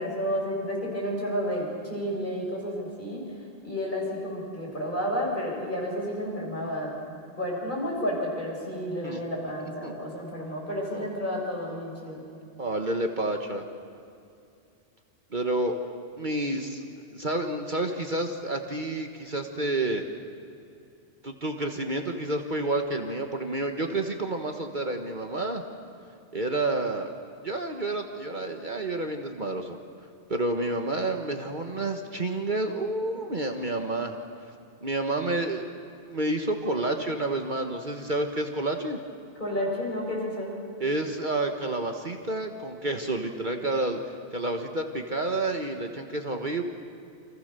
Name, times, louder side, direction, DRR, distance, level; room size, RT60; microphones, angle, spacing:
voice 1, 0.0-3.3 3.6-7.0 7.4-12.2 39.4-40.5, equal, 45° left, -2 dB, 7.2 m, -31 dB
voice 2, 12.6-13.6 15.3-15.7 16.2-16.8 17.1-20.0 21.2-25.6 26.3-27.1 27.4-29.8 30.3-34.1 34.8-35.7 36.1-39.0 40.8-46.6, right 2 dB, 40° right, 4 dB, 1.6 m, -29 dB
29.5 x 26.0 x 6.9 m, 2.6 s
omnidirectional pair, 1.2 m